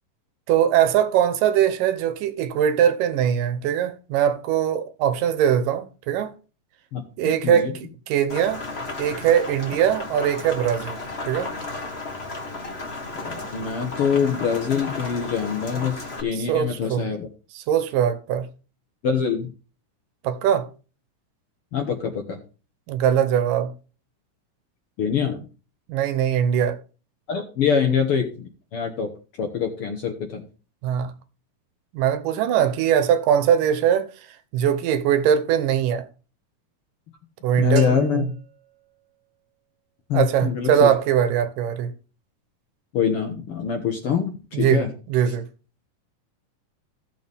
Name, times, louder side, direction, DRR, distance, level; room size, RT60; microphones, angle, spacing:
voice 1, 0.5-6.3 7.2-8.6 9.0-11.0 11.3-11.5 16.3-17.1 17.5-18.5 20.2-20.7 22.9-23.7 25.9-26.8 30.8-31.1 31.9-34.1 34.5-36.1 37.4-38.3 40.1-41.9 44.5-45.5, right 9 dB, 85° right, 2.6 m, -21 dB
Rain, 8.3-16.2, left 2 dB, 75° left, 0.5 m, -34 dB
voice 2, 13.2-17.3 19.0-19.5 21.7-22.4 25.0-25.5 27.3-29.1 29.4-30.5 37.6-38.2 40.1-40.9 42.9-44.9, left 7 dB, 60° left, 1.5 m, -24 dB
sound 1, 37.8-39.7, right 6 dB, 45° right, 2.0 m, -45 dB
16.0 x 6.7 x 3.5 m
omnidirectional pair, 3.7 m